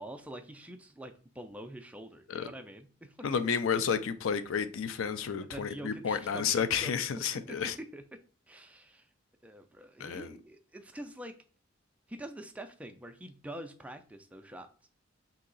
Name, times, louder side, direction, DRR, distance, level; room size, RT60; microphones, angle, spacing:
voice 1, 0.0-3.2 5.4-6.9 7.5-8.0 8.5-9.1 9.4-11.4 12.1-14.7, right 1 dB, 5° right, 0.3 m, -45 dB
voice 2, 3.2-7.7 10.0-10.3, left 6 dB, 85° left, 0.4 m, -31 dB
2.9 x 2.7 x 3.9 m
head